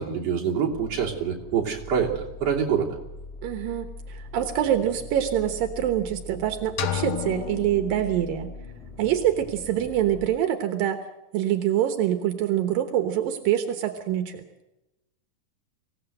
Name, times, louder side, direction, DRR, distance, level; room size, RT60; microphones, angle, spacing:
voice 1, 0.0-2.9, right 7 dB, 45° right, -2 dB, 3.9 m, -26 dB
sound 1, 0.7-10.3, left 2 dB, ahead, 3.5 m, -42 dB
voice 2, 3.4-8.5 9.0-11.0 11.3-14.4, right 11 dB, 80° right, 6 dB, 3.0 m, -25 dB
sound 2, 6.8-8.7, left 10 dB, 85° left, 3.1 m, -32 dB
24.5 x 17.0 x 7.9 m, 0.96 s
omnidirectional pair, 4.0 m